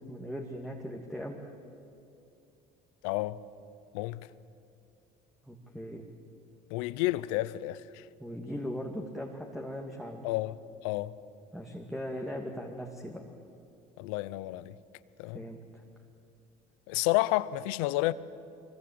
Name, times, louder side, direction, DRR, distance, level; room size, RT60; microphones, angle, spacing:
voice 1, 0.1-1.4 5.4-6.0 8.2-10.2 11.5-13.2 15.3-15.8, equal, ahead, 2.3 m, -39 dB
voice 2, 3.0-3.4 3.9-4.3 6.7-8.0 10.2-10.6 10.8-11.2 14.0-14.8 15.2-15.4 16.9-18.1, left 18 dB, 85° left, 0.7 m, -30 dB
23.5 x 21.0 x 8.7 m
supercardioid pair, 95°, 17 cm